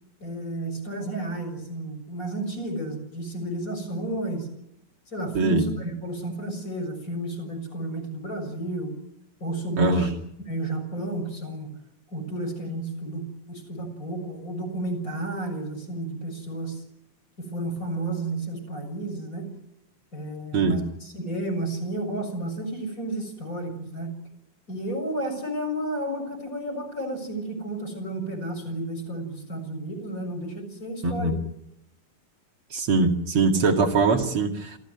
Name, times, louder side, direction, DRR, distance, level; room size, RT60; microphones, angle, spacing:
voice 1, 0.2-4.5 5.1-8.9 9.4-10.1 10.5-11.7 12.1-16.8 17.4-19.5 20.1-24.1 24.7-31.4, right 1 dB, 15° left, 7 dB, 7.0 m, -32 dB
voice 2, 9.8-10.1 20.5-20.8 31.0-31.4 32.7-34.8, right 3 dB, 50° right, 4 dB, 1.6 m, -22 dB
28.5 x 16.5 x 9.7 m, 0.77 s
omnidirectional pair, 5.9 m